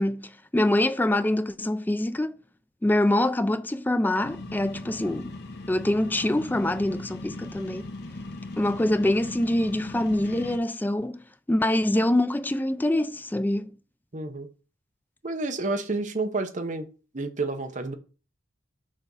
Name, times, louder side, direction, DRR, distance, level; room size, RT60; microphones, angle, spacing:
voice 1, 0.0-2.4 2.8-5.3 5.7-7.9 8.6-11.2 11.5-13.7, left 1 dB, 10° left, 0.3 m, -25 dB
sound 1, 4.2-10.6, left 2 dB, 60° left, 1.0 m, -39 dB
voice 2, 14.1-14.5 15.2-16.9 17.1-17.9, right 3 dB, 40° right, 0.9 m, -30 dB
6.5 x 3.5 x 5.5 m
head